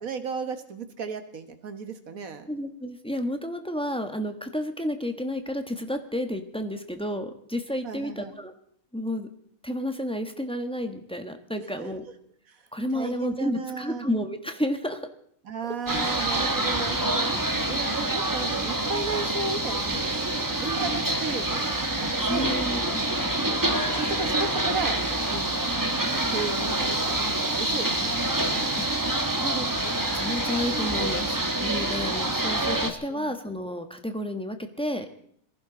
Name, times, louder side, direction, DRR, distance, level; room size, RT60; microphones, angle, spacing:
voice 1, 0.0-2.5 7.8-8.3 11.6-11.9 12.5-12.7 12.9-14.1 15.4-17.3 17.7-22.8 23.1-23.6 23.9-28.8 29.1-30.0 33.1-33.4, right 4 dB, 75° right, 8 dB, 1.9 m, -35 dB
voice 2, 2.5-8.5 8.9-9.3 9.6-12.0 12.7-15.1 22.3-23.0 28.8-28.9 30.1-31.4 31.6-35.1, left 1 dB, 5° left, 6 dB, 1.2 m, -31 dB
sound 1, 15.9-32.9, right 1 dB, 15° right, 1.2 m, -26 dB
sound 2, 23.2-30.6, left 1 dB, 35° left, 3.1 m, -48 dB
22.5 x 15.5 x 3.9 m, 0.64 s
omnidirectional pair, 1.5 m